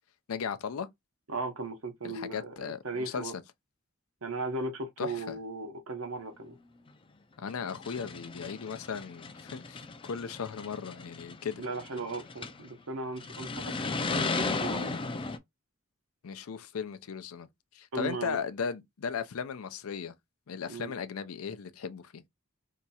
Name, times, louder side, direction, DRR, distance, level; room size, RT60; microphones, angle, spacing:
voice 1, 0.3-0.9 2.0-3.4 5.0-5.4 7.4-11.6 16.2-17.5 17.7-20.1 20.5-22.2, left 6 dB, 85° left, 0.5 m, -37 dB
voice 2, 1.3-3.4 4.2-6.6 11.6-15.0 17.9-18.4 20.7-20.9, right 2 dB, 75° right, 0.9 m, -37 dB
sound 1, 6.9-7.0 7.6-12.7 13.2-15.4, left 4 dB, 25° left, 0.4 m, -36 dB
2.8 x 2.4 x 4.1 m
head